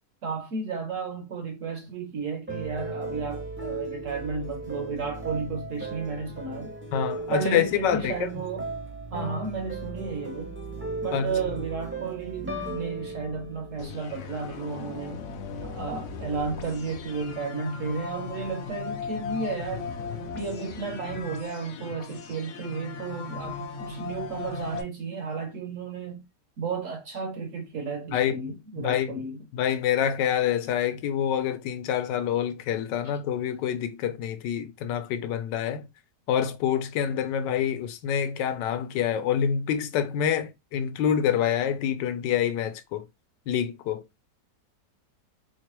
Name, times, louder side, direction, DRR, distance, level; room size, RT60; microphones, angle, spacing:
voice 1, 0.2-6.8 7.3-8.7 9.1-10.6 11.0-15.3 15.6-19.9 20.3-26.3 26.6-29.5, right 4 dB, 65° right, 0.8 m, -33 dB
sound 1, 2.5-14.6, right 2 dB, 15° right, 0.3 m, -36 dB
voice 2, 6.9-8.3 11.1-11.3 28.1-28.5 28.8-29.2 29.5-35.8 36.3-43.0 43.5-44.0, left 9 dB, 85° left, 1.3 m, -27 dB
sound 2, 13.8-24.8, left 5 dB, 70° left, 0.7 m, -37 dB
4.5 x 2.2 x 3.0 m
omnidirectional pair, 1.9 m